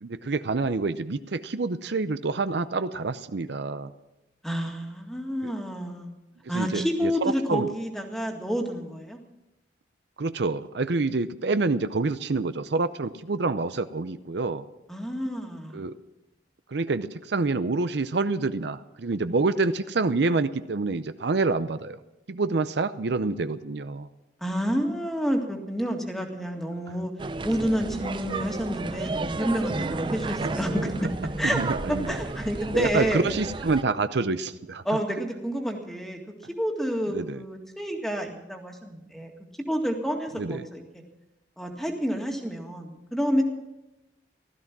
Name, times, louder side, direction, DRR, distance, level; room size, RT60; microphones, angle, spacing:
voice 1, 0.0-3.9 5.4-5.5 6.5-7.7 10.2-14.6 15.7-16.0 16.7-22.0 22.3-24.1 26.9-27.0 29.9-30.0 31.4-32.1 32.7-34.8 37.1-37.4 40.4-40.6, right 3 dB, 70° right, 12 dB, 0.6 m, -27 dB
voice 2, 4.4-6.1 6.5-9.2 14.9-15.8 24.4-27.1 27.4-31.1 31.4-31.6 31.9-33.2 34.9-36.2 36.6-39.3 39.7-40.8 41.6-43.4, equal, ahead, 2 dB, 1.9 m, -29 dB
sound 1, 27.2-33.8, right 3 dB, 25° right, 0.4 m, -32 dB
16.0 x 13.5 x 6.0 m, 0.97 s
head